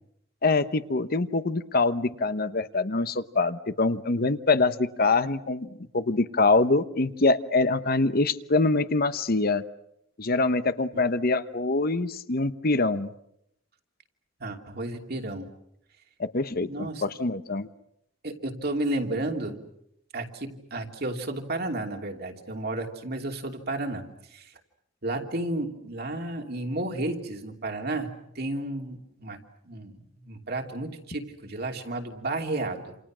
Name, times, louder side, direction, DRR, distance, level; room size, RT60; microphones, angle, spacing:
voice 1, 0.4-9.6 10.2-13.1 16.2-17.7, left 3 dB, 50° left, 12 dB, 1.0 m, -24 dB
voice 2, 14.4-15.5 16.7-17.0 18.2-19.6 20.1-24.0 24.3-24.5 25.0-29.4 29.6-33.0, right 2 dB, 55° right, 3 dB, 2.9 m, -32 dB
28.5 x 28.5 x 6.2 m, 0.77 s
head